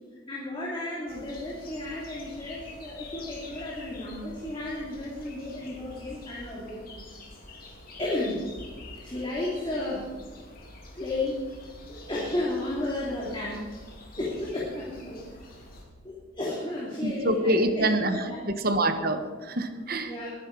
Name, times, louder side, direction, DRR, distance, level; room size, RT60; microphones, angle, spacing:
voice 1, 0.3-7.1 7.4-7.6 8.0-8.5 8.9-10.1 11.0-13.7 14.2-15.2 16.0-18.4 20.0-20.3, left 1 dB, 25° left, -6 dB, 3.1 m, -33 dB
sound 1, 1.1-15.9, left 2 dB, 45° left, 3.3 m, -47 dB
voice 2, 17.0-18.2 18.6-20.1, right 1 dB, 45° right, 8 dB, 1.3 m, -25 dB
22.5 x 10.0 x 4.8 m, 1.5 s
head